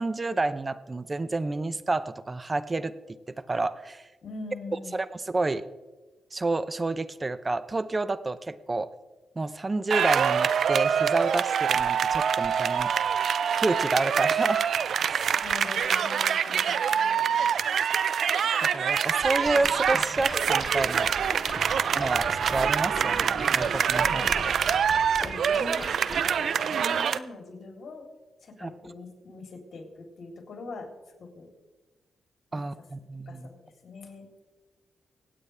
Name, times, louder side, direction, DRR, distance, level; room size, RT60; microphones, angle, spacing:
voice 1, 0.0-2.9 3.4-4.0 4.9-5.6 6.3-8.9 9.4-12.9 13.6-14.6 15.0-15.3 18.6-21.1 21.9-24.5 28.6-28.7 32.5-33.5, right 2 dB, 30° right, 14 dB, 0.7 m, -29 dB
voice 2, 4.2-5.0 15.4-17.5 24.0-24.5 25.2-28.1 28.4-30.9 31.2-31.5 32.5-32.8 33.3-34.3, left 3 dB, 65° left, 1 dB, 3.4 m, -43 dB
sound 1, 9.9-27.2, right 7 dB, 70° right, 0.4 m, -25 dB
sound 2, 19.2-26.3, left 1 dB, ahead, 3.3 m, -39 dB
25.0 x 8.9 x 3.4 m, 1.2 s
cardioid pair, 80°, 0 cm